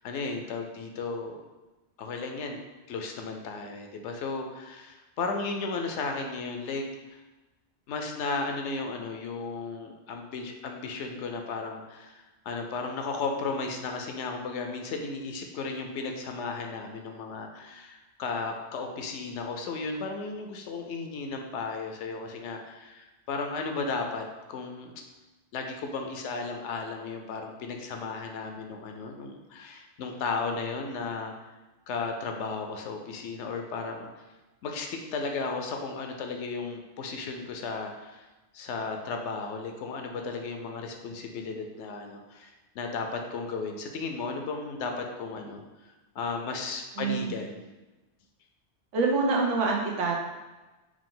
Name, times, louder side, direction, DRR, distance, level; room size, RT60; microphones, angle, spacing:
voice 1, 0.0-1.4 2.0-2.6 2.9-7.2 7.9-24.9 25.5-31.3 31.9-34.1 34.6-38.2 38.5-47.6, left 4 dB, 75° left, 3 dB, 0.9 m, -35 dB
voice 2, 47.0-47.4 48.9-50.2, right 4 dB, 90° right, -1 dB, 1.1 m, -26 dB
4.7 x 2.4 x 3.7 m, 1.1 s
omnidirectional pair, 1.2 m